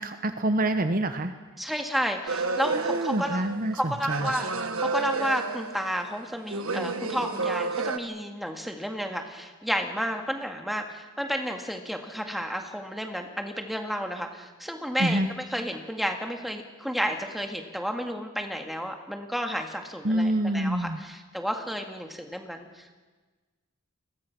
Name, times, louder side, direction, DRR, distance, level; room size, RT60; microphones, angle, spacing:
voice 1, 0.0-1.3 2.7-4.3 15.0-15.3 20.0-21.0, right 1 dB, 40° right, 8 dB, 1.1 m, -27 dB
voice 2, 1.6-3.5 3.9-22.9, equal, ahead, 3 dB, 2.0 m, -32 dB
sound 1, 2.3-3.8 4.1-6.1 6.5-8.0, right 4 dB, 70° right, 1.5 m, -30 dB
30.0 x 21.5 x 6.1 m, 1.3 s
head